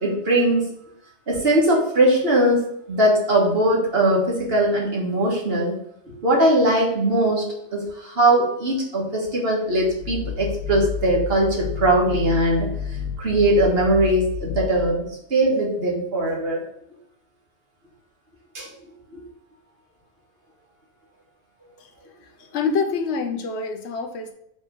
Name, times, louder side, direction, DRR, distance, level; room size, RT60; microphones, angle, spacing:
voice 1, 0.0-0.7 1.3-5.7 6.1-7.5 7.7-12.7 13.2-16.6 18.5-18.7 19.1-19.2, right 1 dB, 60° right, -2 dB, 1.8 m, -20 dB
sound 1, 9.7-15.2, left 7 dB, 60° left, 0.5 m, -31 dB
voice 2, 22.5-24.3, left 5 dB, 75° left, 4 dB, 1.0 m, -25 dB
5.3 x 3.6 x 5.4 m, 0.73 s
omnidirectional pair, 1.2 m